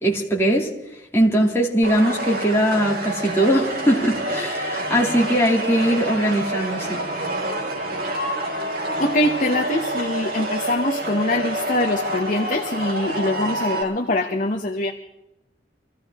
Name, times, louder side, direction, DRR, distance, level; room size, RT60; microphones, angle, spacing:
voice 1, 0.0-7.0, right 1 dB, 15° left, -3 dB, 2.7 m, -20 dB
sound 1, 1.8-13.8, right 1 dB, 55° right, 4.0 m, -27 dB
voice 2, 9.0-14.9, left 1 dB, 45° left, 4 dB, 1.1 m, -23 dB
25.0 x 15.0 x 3.7 m, 0.87 s
head